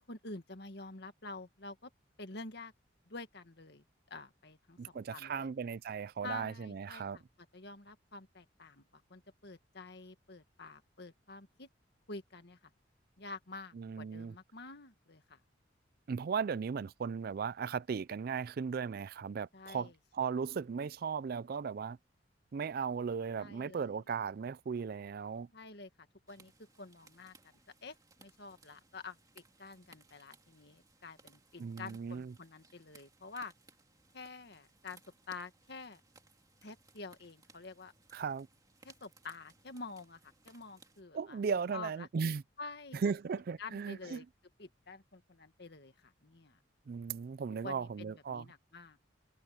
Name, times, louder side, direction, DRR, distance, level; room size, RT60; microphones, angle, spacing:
voice 1, 0.0-1.9 2.2-2.7 3.1-5.5 6.2-7.2 7.5-11.7 12.1-12.7 13.2-15.4 19.5-19.9 23.4-24.0 25.5-27.5 27.8-33.5 34.1-35.0 35.3-36.0 36.6-37.9 38.8-41.4 41.7-42.1 42.6-43.0 43.6-44.3 44.6-46.6 47.5-49.0, left 3 dB, 60° left, 1.9 m, -48 dB
voice 2, 4.8-7.2 13.8-14.3 16.1-22.0 22.5-25.5 31.6-32.3 38.1-38.5 41.1-42.4 42.9-44.2 46.9-48.4, right 6 dB, 55° right, 0.4 m, -37 dB
sound 1, 26.3-41.0, right 3 dB, 20° right, 2.3 m, -64 dB
head